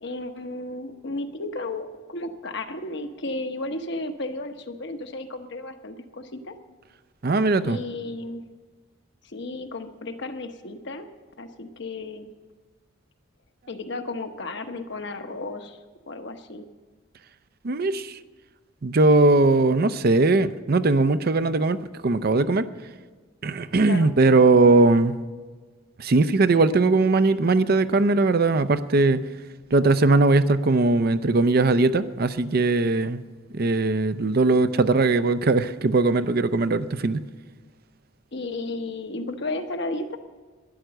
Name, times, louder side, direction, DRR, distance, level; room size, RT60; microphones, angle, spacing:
voice 1, 0.0-6.5 7.6-8.4 9.2-11.1 11.4-12.3 13.7-15.8 16.1-16.6 23.8-24.1 38.3-40.2, left 2 dB, 55° left, 1.0 m, -33 dB
voice 2, 7.2-7.8 17.6-18.1 18.8-21.8 22.0-22.7 23.4-25.1 26.0-29.2 29.7-33.2 33.5-37.2, right 3 dB, 45° right, 0.5 m, -20 dB
12.5 x 10.5 x 7.7 m
head